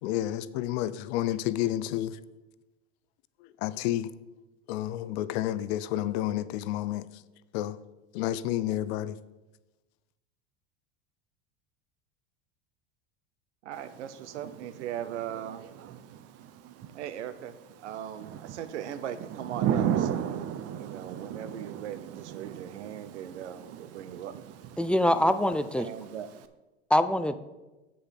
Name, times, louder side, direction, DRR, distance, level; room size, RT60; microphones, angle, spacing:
voice 1, 0.0-2.2 3.4-4.1 4.7-7.1 7.5-7.8 8.1-9.2, left 13 dB, 65° left, 0.6 m, -30 dB
voice 2, 13.6-15.7 16.9-17.6 17.8-24.3 25.7-26.3, right 10 dB, 85° right, 0.8 m, -39 dB
Thunder / Rain, 13.7-26.5, right 10 dB, 45° right, 0.7 m, -36 dB
voice 3, 24.8-25.9 26.9-27.3, left 1 dB, 5° left, 0.3 m, -24 dB
7.7 x 6.7 x 5.9 m
hypercardioid pair, 95°, 33 cm